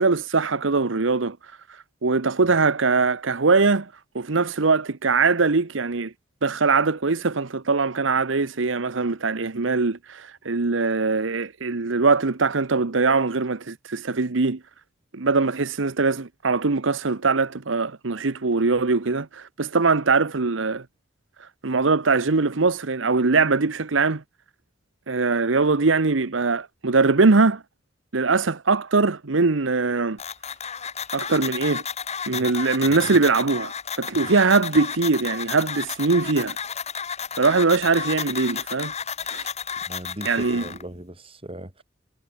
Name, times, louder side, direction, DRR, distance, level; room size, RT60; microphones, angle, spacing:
voice 1, 0.0-6.1 6.4-14.6 15.1-20.8 21.4-24.2 25.1-27.6 28.1-30.2 31.1-31.8 32.3-36.6 37.4-38.9 39.3-39.5 40.2-40.6, right 4 dB, 75° right, 1.0 m, -22 dB
sound 1, 30.2-40.8, left 7 dB, 35° left, 1.9 m, -32 dB
voice 2, 39.9-41.8, right 1 dB, 30° right, 4.2 m, -39 dB
head